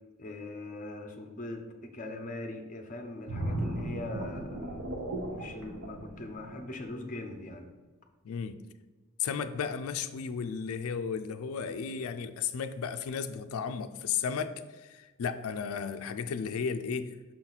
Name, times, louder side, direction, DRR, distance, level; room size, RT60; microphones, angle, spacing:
voice 1, 0.2-4.8 5.3-7.7, left 2 dB, 35° left, 5 dB, 0.6 m, -41 dB
sound 1, 3.3-6.9 7.3-7.5, right 1 dB, 70° right, 1.0 m, -36 dB
voice 2, 8.2-8.6 9.2-17.2, left 6 dB, 75° left, 9 dB, 0.4 m, -34 dB
6.1 x 4.4 x 4.0 m, 1.2 s
head